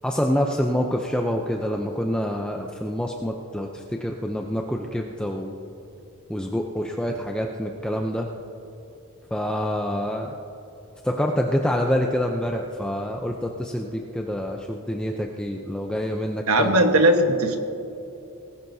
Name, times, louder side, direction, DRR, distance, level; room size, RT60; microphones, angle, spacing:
voice 1, 0.0-5.5 6.3-8.3 9.3-10.3 11.0-16.8, equal, 5° left, 1 dB, 0.6 m, -26 dB
voice 2, 16.5-17.6, right 1 dB, 90° right, 5 dB, 1.3 m, -18 dB
19.5 x 16.5 x 2.8 m, 3.0 s
head